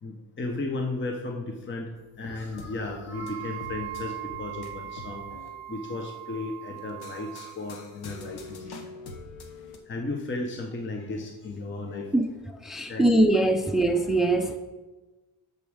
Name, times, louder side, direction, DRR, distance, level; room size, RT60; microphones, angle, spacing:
voice 1, 0.0-1.9 2.2-5.3 5.7-8.8 9.9-12.1 12.9-13.2, left 2 dB, 30° left, 2 dB, 0.9 m, -34 dB
sound 1, 2.0-5.5 6.8-9.8, left 3 dB, 80° left, 1.1 m, -44 dB
Wind instrument woodwind instrument, 3.1-7.6, right 14 dB, 85° right, 0.7 m, -40 dB
voice 2, 12.1-14.6, right 2 dB, ahead, 6 dB, 0.6 m, -23 dB
6.2 x 5.3 x 6.4 m, 1.2 s
cardioid pair, 85°, 38 cm